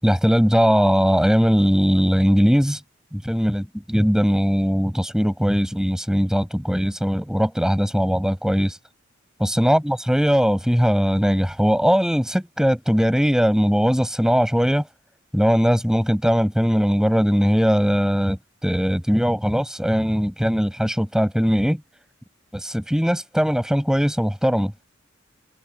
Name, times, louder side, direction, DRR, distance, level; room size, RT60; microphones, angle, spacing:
voice 1, 0.0-2.8 3.1-3.6 3.9-8.8 9.4-14.9 15.3-21.8 22.5-24.7, equal, 5° right, 6.6 m, -20 dB
head